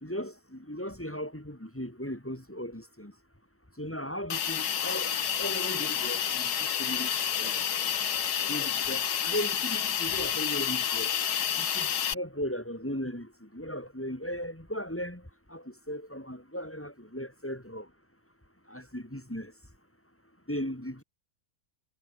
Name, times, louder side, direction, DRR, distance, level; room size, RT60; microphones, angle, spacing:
voice 1, 0.0-3.1 3.8-6.5 6.8-7.1 7.4-7.6 8.5-11.1 11.6-15.2 15.5-17.9 18.7-19.5 20.5-21.0, equal, 10° left, 2.3 m, -37 dB
Hiss, 4.3-12.1, left 8 dB, 80° left, 1.9 m, -29 dB
omnidirectional pair, 1.7 m